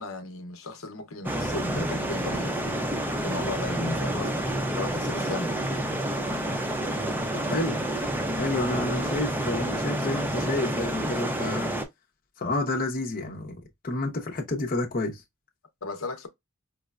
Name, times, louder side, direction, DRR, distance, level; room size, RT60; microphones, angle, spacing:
voice 1, 0.0-4.5 4.8-5.7 15.8-16.3, left 2 dB, 70° left, 0.8 m, -35 dB
sound 1, 1.2-11.8, right 1 dB, 10° right, 0.6 m, -29 dB
voice 2, 7.3-7.8 8.4-11.7 12.4-13.6 13.8-15.2, left 2 dB, 40° left, 0.7 m, -29 dB
4.9 x 2.2 x 2.4 m
head